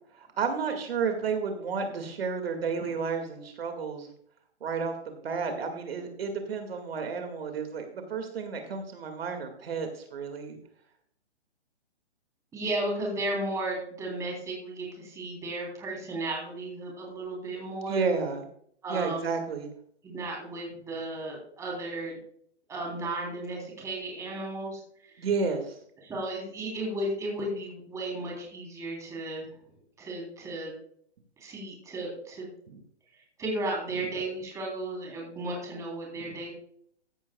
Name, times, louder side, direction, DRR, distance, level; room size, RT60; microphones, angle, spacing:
voice 1, 0.2-4.1 4.6-10.6 17.9-18.4 18.9-19.7 25.2-25.8 32.7-32.8 36.2-36.4, right 5 dB, 60° right, 5 dB, 2.2 m, -31 dB
voice 2, 12.5-18.1 18.8-19.2 20.0-22.2 22.7-25.3 26.0-29.5 30.0-30.8 31.4-32.5 33.4-36.5, right 1 dB, 10° right, -2 dB, 3.5 m, -34 dB
15.0 x 11.0 x 2.3 m, 0.65 s
hypercardioid pair, 160°, 33 cm